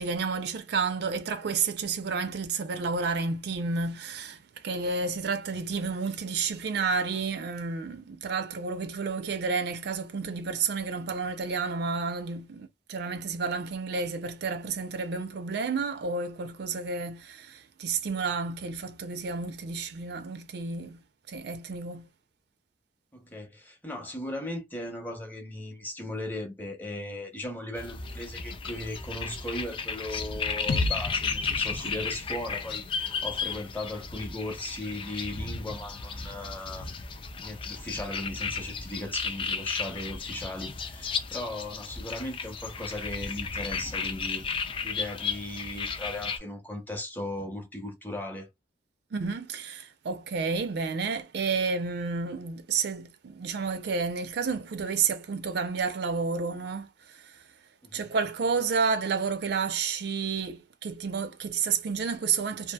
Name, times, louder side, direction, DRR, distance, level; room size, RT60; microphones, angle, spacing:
voice 1, 0.0-21.0 21.3-22.1 49.1-57.4 57.9-62.7, right 5 dB, 60° right, 0.4 m, -31 dB
voice 2, 23.1-37.0 37.4-44.5 44.8-48.5 57.8-58.1, left 1 dB, 10° left, 0.7 m, -37 dB
sound 1, 27.7-46.4, left 5 dB, 30° left, 0.3 m, -34 dB
sound 2, 30.7-34.6, left 2 dB, 80° left, 0.5 m, -35 dB
2.7 x 2.4 x 2.2 m
head